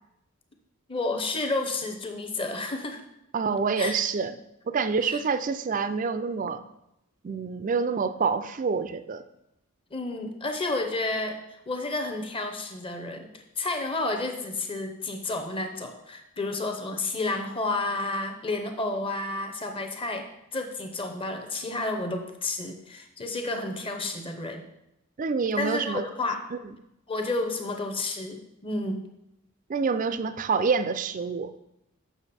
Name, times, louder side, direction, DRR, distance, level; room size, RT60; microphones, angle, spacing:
voice 1, 0.9-3.0 3.8-4.0 5.0-5.2 9.9-24.6 25.6-26.4 27.1-29.0, left 2 dB, 25° left, 4 dB, 0.8 m, -31 dB
voice 2, 3.3-4.4 4.7-6.6 7.2-9.2 25.2-26.0 26.5-26.7 29.7-31.5, right 5 dB, 35° right, 12 dB, 0.4 m, -27 dB
7.0 x 6.1 x 4.2 m, 0.86 s
head